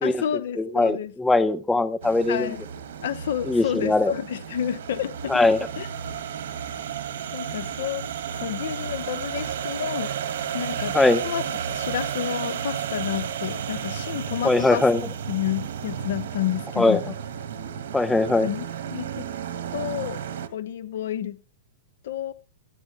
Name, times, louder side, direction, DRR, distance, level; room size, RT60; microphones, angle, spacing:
voice 1, 0.0-1.1 2.3-2.7 3.0-5.4 5.8-5.9 7.3-8.1 8.4-10.2 10.5-11.0 11.2-14.9 15.3-17.2 18.4-19.3 19.7-20.2 20.5-21.4 22.0-22.3, left 10 dB, 70° left, 0.8 m, -30 dB
voice 2, 0.6-2.5 3.5-4.1 5.3-5.6 10.9-11.2 14.4-15.0 16.8-17.0 17.9-18.5, left 2 dB, 5° left, 0.6 m, -20 dB
sound 1, 2.0-20.5, right 8 dB, 65° right, 1.5 m, -33 dB
13.5 x 9.9 x 3.3 m
hypercardioid pair, 145°, 0 cm